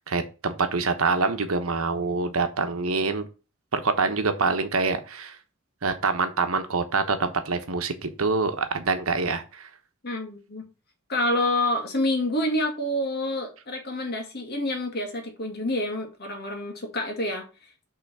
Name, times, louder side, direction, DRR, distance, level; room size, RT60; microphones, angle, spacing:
voice 1, 0.0-3.2 3.7-5.4 5.8-9.7, right 4 dB, 75° right, 1.0 m, -25 dB
voice 2, 10.0-10.6 11.1-17.5, left 1 dB, 50° left, 1.9 m, -27 dB
5.8 x 3.9 x 5.9 m
head